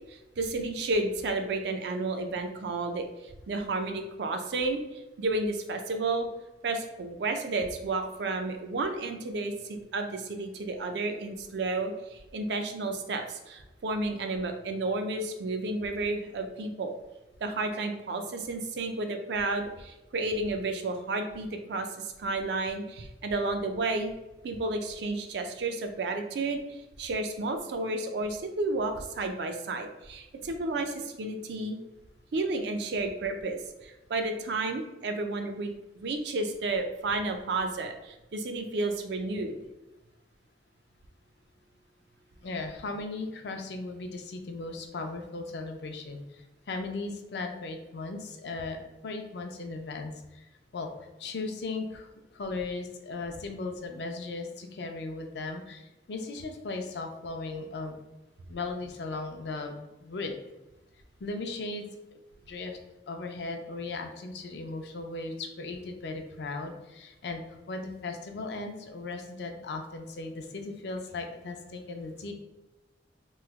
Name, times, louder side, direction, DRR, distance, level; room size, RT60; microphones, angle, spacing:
voice 1, 0.1-6.3 6.6-16.9 17.4-24.1 24.4-31.8 32.3-39.6, right 2 dB, 70° right, 6 dB, 0.4 m, -32 dB
voice 2, 42.4-48.8 49.0-50.4 50.7-50.9 51.2-58.0 58.5-60.3 61.2-61.9 62.5-62.8 63.1-72.3, left 3 dB, 70° left, 4 dB, 0.4 m, -37 dB
3.0 x 2.0 x 3.4 m, 1.0 s
head